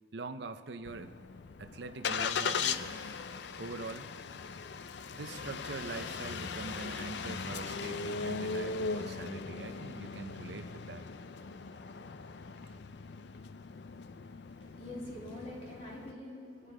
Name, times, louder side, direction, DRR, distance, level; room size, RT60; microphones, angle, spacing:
voice 1, 0.1-1.1 1.6-3.0 3.6-4.1 5.1-11.0 12.6-12.8, right 3 dB, 65° right, 10 dB, 0.7 m, -43 dB
Engine starting, 0.9-16.1, left 5 dB, 65° left, 0.4 m, -39 dB
voice 2, 14.5-16.7, left 1 dB, 30° left, -4 dB, 3.0 m, -45 dB
22.0 x 10.0 x 4.9 m, 2.4 s
head